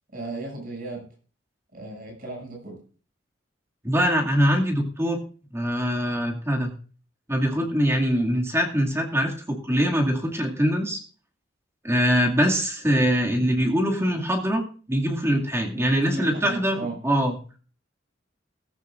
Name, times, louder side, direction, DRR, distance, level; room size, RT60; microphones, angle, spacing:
voice 1, 0.1-1.1 1.7-2.8 12.9-13.1 15.7-17.0, right 2 dB, 50° right, 0 dB, 7.4 m, -35 dB
voice 2, 3.8-5.2 5.5-6.7 7.3-11.0 11.8-14.6 14.9-17.4, equal, 15° right, 0 dB, 2.3 m, -23 dB
17.0 x 15.5 x 2.6 m, 0.39 s
head